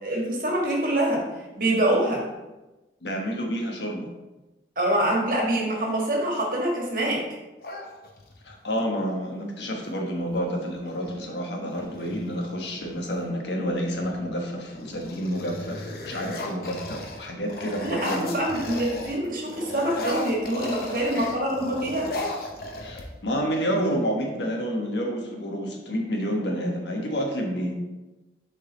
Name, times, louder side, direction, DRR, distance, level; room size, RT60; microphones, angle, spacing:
voice 1, 0.0-1.2 1.5-2.3 4.7-7.2 17.8-22.1, right 1 dB, 50° right, -1 dB, 1.5 m, -25 dB
voice 2, 3.0-4.1 8.4-18.4 21.1-21.3 22.8-27.7, equal, 80° left, 1 dB, 1.2 m, -29 dB
sound 1, 7.6-8.5 10.2-10.4 10.7-11.2 11.7-13.3 13.9-14.3 14.6-19.2 19.5-23.4, left 2 dB, 55° left, 0.8 m, -36 dB
6.8 x 4.0 x 3.8 m, 1.1 s
head